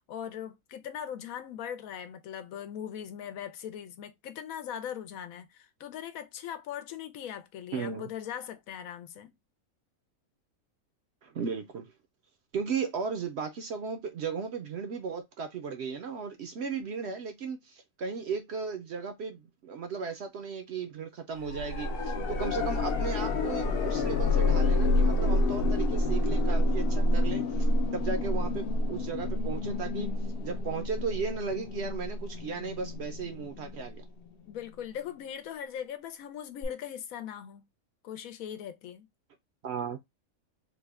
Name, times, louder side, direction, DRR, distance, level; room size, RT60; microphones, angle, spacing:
voice 1, 0.0-9.3 34.5-37.6 38.0-39.1, left 9 dB, 80° left, 1.0 m, -40 dB
voice 2, 7.7-8.1 11.2-11.9 12.5-27.7 27.9-30.1 30.4-34.0 39.6-40.0, right 5 dB, 65° right, 0.7 m, -36 dB
sound 1, 21.4-34.3 36.6-36.7, left 2 dB, 60° left, 0.6 m, -28 dB
3.4 x 2.2 x 3.4 m
omnidirectional pair, 1.5 m